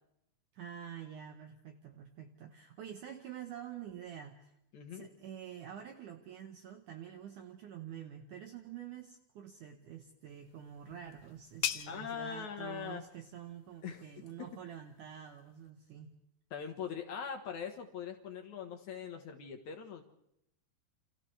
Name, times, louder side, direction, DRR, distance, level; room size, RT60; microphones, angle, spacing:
voice 1, 0.5-4.5 4.9-16.1, right 9 dB, 80° right, 5 dB, 1.8 m, -47 dB
voice 2, 4.7-5.1 11.9-13.0 13.8-14.0 14.4-14.5 16.5-20.0, left 7 dB, 65° left, 4 dB, 1.9 m, -41 dB
sound 1, 10.3-15.7, left 12 dB, 85° left, 3.2 m, -44 dB
29.5 x 27.0 x 3.3 m, 0.81 s
omnidirectional pair, 5.2 m